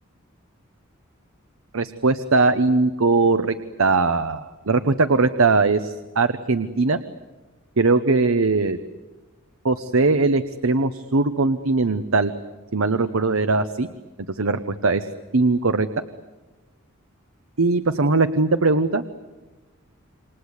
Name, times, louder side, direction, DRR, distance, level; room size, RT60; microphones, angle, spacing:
voice 1, 1.7-7.0 7.8-8.8 9.6-12.3 12.7-13.9 14.3-15.1 15.3-15.9 17.6-19.0, right 3 dB, 85° right, 10 dB, 1.0 m, -20 dB
28.0 x 25.0 x 8.2 m, 1.2 s
head